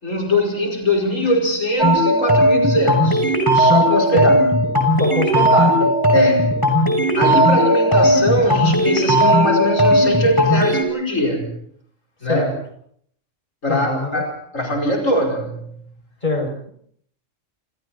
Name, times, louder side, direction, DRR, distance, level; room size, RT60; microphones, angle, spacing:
voice 1, 0.0-4.3 6.1-6.7 7.1-11.6 12.2-12.5 13.6-15.9, left 1 dB, 90° left, 5.7 m, -22 dB
sound 1, 1.8-10.8, equal, 15° left, 6.6 m, -16 dB
voice 2, 5.0-5.9 12.2-12.5 13.7-14.2 16.2-16.7, left 1 dB, 35° left, 7.2 m, -23 dB
30.0 x 27.0 x 4.3 m
omnidirectional pair, 1.3 m